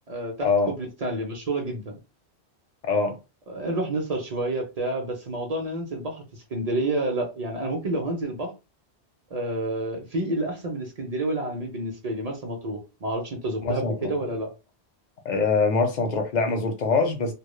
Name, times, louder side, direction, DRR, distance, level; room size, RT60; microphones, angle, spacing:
voice 1, 0.1-2.0 3.5-8.5 9.3-14.5, right 1 dB, 50° right, 0.5 m, -29 dB
voice 2, 2.9-3.2 13.6-14.1 15.2-17.3, left 4 dB, 55° left, 0.5 m, -23 dB
2.1 x 2.0 x 3.0 m
omnidirectional pair, 1.1 m